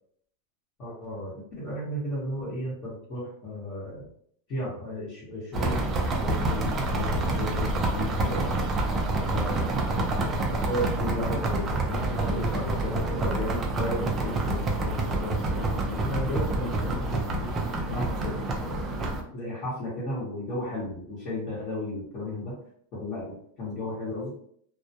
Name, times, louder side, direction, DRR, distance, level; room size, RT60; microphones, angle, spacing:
voice 1, 0.8-4.1 4.5-5.8 6.1-8.5 9.3-17.5 17.9-18.3 18.6-18.9 19.3-22.5 22.9-24.3, left 1 dB, 35° left, -8 dB, 0.9 m, -34 dB
sound 1, 5.5-19.2, right 2 dB, 25° right, 0.4 m, -28 dB
2.1 x 2.1 x 2.7 m, 0.64 s
supercardioid pair, 140°, 0 cm